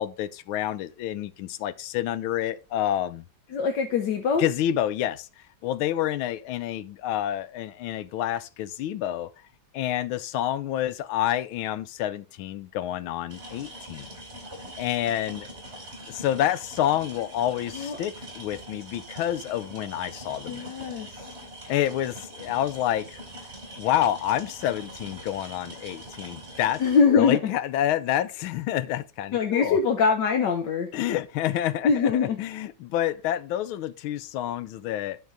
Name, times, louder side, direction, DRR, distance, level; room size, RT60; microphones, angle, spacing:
voice 1, 0.0-3.2 4.4-5.3 5.6-9.3 9.7-14.1 14.8-15.5 16.1-20.7 21.7-23.2 23.8-26.8 27.1-29.8 30.9-35.2, left 12 dB, 90° left, 1.5 m, -28 dB
voice 2, 3.5-4.4 17.7-18.0 20.5-21.3 26.8-27.5 29.3-30.9 31.8-32.4, left 5 dB, 65° left, 1.5 m, -23 dB
sound 1, 13.3-27.0, right 1 dB, 30° right, 3.2 m, -43 dB
12.0 x 4.7 x 3.8 m
omnidirectional pair, 2.2 m